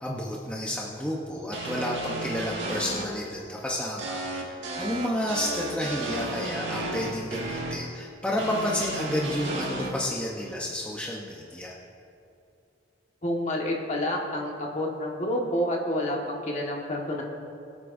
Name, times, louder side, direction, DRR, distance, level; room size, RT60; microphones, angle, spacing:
voice 1, 0.0-11.7, left 1 dB, 5° left, -4 dB, 0.9 m, -31 dB
sound 1, 1.5-3.0 4.0-7.7 8.4-9.9, right 2 dB, 70° right, 1.9 m, -33 dB
voice 2, 13.2-17.2, left 1 dB, 35° left, -1 dB, 1.6 m, -29 dB
22.5 x 8.4 x 2.7 m, 2.7 s
head